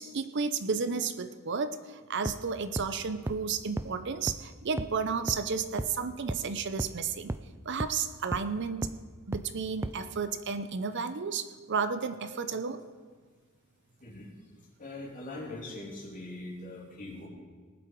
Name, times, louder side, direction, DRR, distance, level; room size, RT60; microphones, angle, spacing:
voice 1, 0.0-7.4 7.7-8.9 9.3-12.8, right 5 dB, 55° right, 10 dB, 0.6 m, -32 dB
sound 1, 2.3-2.4 2.8-2.9 3.3-3.4 3.8-3.9 4.3-4.4 4.8-4.9 5.3-5.4 5.8-5.9 6.3-6.4 6.8-6.9 7.3-7.4 7.8-7.9 8.3-8.4 8.8-8.9 9.3-9.4 9.8-9.9, right 2 dB, 10° right, 0.3 m, -32 dB
voice 2, 14.0-14.3 14.8-17.3, left 2 dB, 40° left, -3 dB, 3.2 m, -41 dB
19.0 x 7.8 x 4.6 m, 1.5 s
head